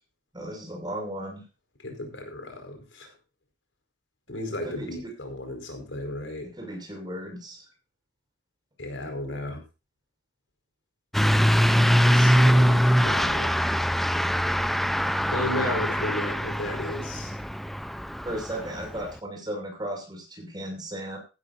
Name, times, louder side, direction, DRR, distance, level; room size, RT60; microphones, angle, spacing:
voice 1, 0.3-1.4 4.6-5.1 6.6-7.6 18.2-21.2, right 1 dB, 25° right, 2 dB, 5.9 m, -35 dB
voice 2, 1.8-3.1 4.3-6.5 8.8-9.6 12.1-13.5 15.3-17.4, left 1 dB, 75° left, 5 dB, 4.9 m, -34 dB
Truck / Accelerating revving vroom, 11.1-19.1, equal, ahead, 0.5 m, -23 dB
15.0 x 13.0 x 2.6 m, 0.29 s
head